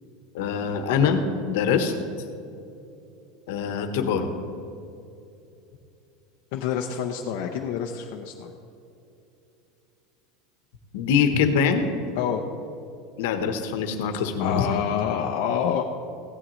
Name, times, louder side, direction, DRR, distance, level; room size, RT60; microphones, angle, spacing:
voice 1, 0.3-1.9 3.5-4.3 10.9-11.9 13.2-14.8, left 6 dB, 75° left, 7 dB, 1.1 m, -23 dB
voice 2, 6.5-8.5 12.2-12.5 14.4-15.8, left 8 dB, 55° left, 1 dB, 0.7 m, -27 dB
16.5 x 11.5 x 3.2 m, 2.7 s
supercardioid pair, 165°, 0 cm